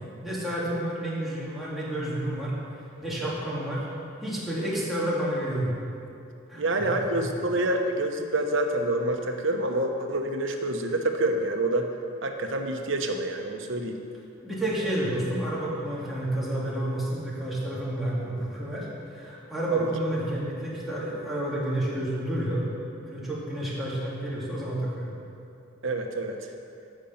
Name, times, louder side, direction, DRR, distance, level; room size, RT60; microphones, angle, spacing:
voice 1, 0.2-2.6 3.0-3.9 4.2-5.7 6.5-7.3 14.4-22.7 23.0-25.1, right 1 dB, ahead, -8 dB, 2.4 m, -30 dB
voice 2, 6.6-11.9 12.2-14.0 14.8-14.9 19.7-19.9 25.8-26.4, right 1 dB, 75° right, 4 dB, 1.0 m, -27 dB
14.0 x 5.3 x 5.8 m, 2.6 s
head